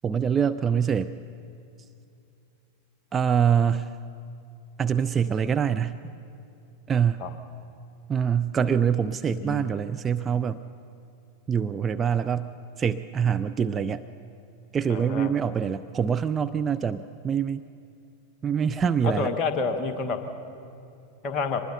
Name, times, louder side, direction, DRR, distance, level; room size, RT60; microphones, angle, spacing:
voice 1, 0.0-1.1 3.1-3.9 4.8-6.0 6.9-7.2 8.1-10.6 11.5-14.0 14.7-17.6 18.4-19.3, right 7 dB, 20° right, 9 dB, 0.4 m, -25 dB
voice 2, 9.3-9.6 14.9-15.3 19.0-20.2 21.2-21.6, left 4 dB, 30° left, 5 dB, 1.6 m, -28 dB
24.0 x 20.0 x 5.6 m, 2.6 s
figure-of-eight pair, 90°, 0 cm